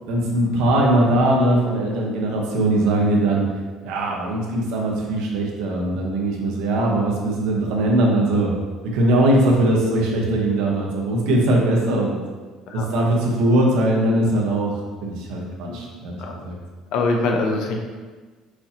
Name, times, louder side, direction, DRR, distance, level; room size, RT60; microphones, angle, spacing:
voice 1, 0.1-3.5 3.8-8.5 8.9-12.2 12.7-14.7 15.0-16.6, right 1 dB, 85° right, -1 dB, 0.9 m, -20 dB
voice 2, 16.9-17.8, left 3 dB, 65° left, 2 dB, 0.7 m, -23 dB
6.1 x 2.8 x 2.9 m, 1.4 s
cardioid pair, 160°, 0 cm